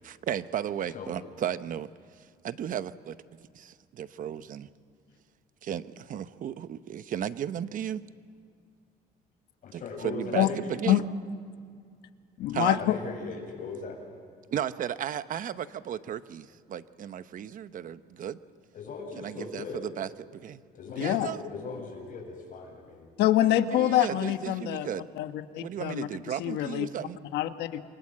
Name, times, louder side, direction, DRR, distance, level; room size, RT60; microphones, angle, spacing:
voice 1, 0.0-1.9 2.4-3.2 3.5-4.7 5.6-8.0 9.7-11.1 12.5-12.8 14.5-18.4 19.2-20.6 21.0-21.4 23.7-25.1 25.6-27.2, right 9 dB, 50° right, 13 dB, 1.0 m, -34 dB
voice 2, 9.6-10.6 12.8-14.0 18.7-19.8 20.7-23.1, left 4 dB, 50° left, 2 dB, 7.3 m, -39 dB
voice 3, 12.4-13.0 21.0-21.3 23.2-24.9 25.1-26.1 26.4-26.9 27.3-27.8, left 13 dB, 85° left, 9 dB, 1.4 m, -25 dB
28.0 x 23.5 x 7.6 m, 2.2 s
cardioid pair, 110°, 17 cm